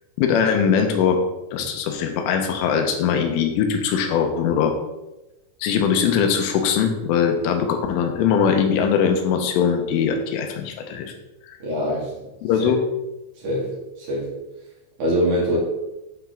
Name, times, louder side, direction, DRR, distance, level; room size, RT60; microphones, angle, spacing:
voice 1, 0.2-1.2 1.5-4.7 5.6-11.1 11.5-11.6 12.4-12.8, left 7 dB, 90° left, 4 dB, 3.4 m, -21 dB
voice 2, 11.6-12.1 12.6-12.7 13.4-14.3 15.0-15.6, equal, 50° right, -5 dB, 2.8 m, -24 dB
8.6 x 6.0 x 3.6 m, 0.99 s
omnidirectional pair, 5.7 m